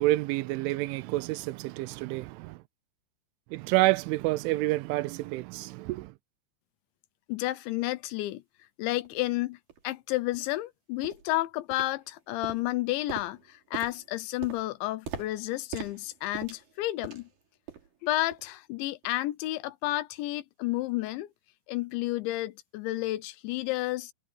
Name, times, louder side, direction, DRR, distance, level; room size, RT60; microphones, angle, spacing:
voice 1, 0.0-2.6 3.5-6.1, right 19 dB, 85° right, 3.1 m, -28 dB
voice 2, 7.3-8.4 8.8-9.6 9.8-17.3 18.0-21.3 21.7-24.1, left 17 dB, 80° left, 3.0 m, -31 dB
sound 1, 9.0-9.1 9.7-9.8 10.3-10.5 11.0-11.3 11.7-12.2 12.4-17.4 17.7-18.0 18.3-18.5 19.0-19.1, right 8 dB, 45° right, 4.5 m, -42 dB
omnidirectional pair, 5.6 m